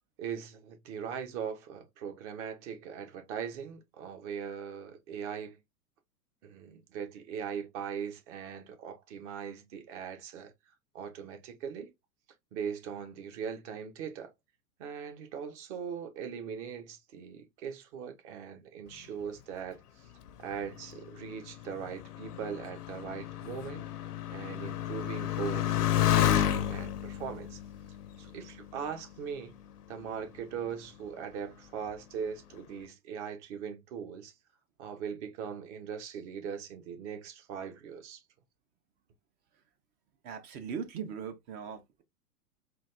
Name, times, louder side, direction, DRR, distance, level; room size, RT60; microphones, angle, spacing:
voice 1, 0.2-5.6 6.4-10.5 10.9-11.9 12.5-14.3 14.8-20.1 20.4-23.8 24.3-27.6 28.2-29.5 29.9-34.3 34.8-38.2, right 7 dB, 45° right, 1.2 m, -40 dB
Motorcycle, 20.3-29.3 30.0-30.6, left 11 dB, 70° left, 0.7 m, -32 dB
voice 2, 40.2-42.0, right 7 dB, 20° right, 0.4 m, -39 dB
3.9 x 2.4 x 3.3 m
figure-of-eight pair, 100°, 47 cm